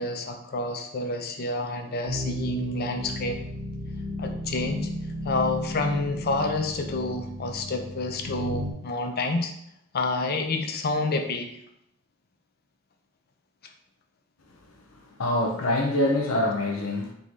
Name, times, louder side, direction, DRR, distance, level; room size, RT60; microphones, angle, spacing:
voice 1, 0.0-3.4 4.2-4.9 5.2-9.5 9.9-11.5, left 2 dB, 50° left, 0.5 m, -28 dB
sound 1, 2.1-8.7, left 1 dB, 65° right, 1.2 m, -34 dB
voice 2, 15.2-17.1, left 1 dB, 90° left, 0.8 m, -25 dB
3.8 x 3.1 x 3.9 m
head